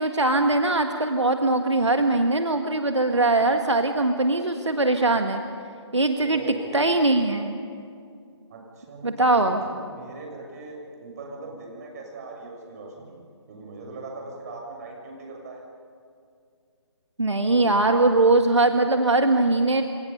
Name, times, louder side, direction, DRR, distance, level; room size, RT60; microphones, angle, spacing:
voice 1, 0.0-5.4 5.9-6.4 6.7-7.6 9.0-9.6 17.2-19.8, right 2 dB, 80° right, 5 dB, 1.7 m, -21 dB
voice 2, 6.2-6.9 8.5-15.6, right 3 dB, 35° right, 0 dB, 6.5 m, -40 dB
28.0 x 28.0 x 5.6 m, 2.3 s
figure-of-eight pair, 145°, 15 cm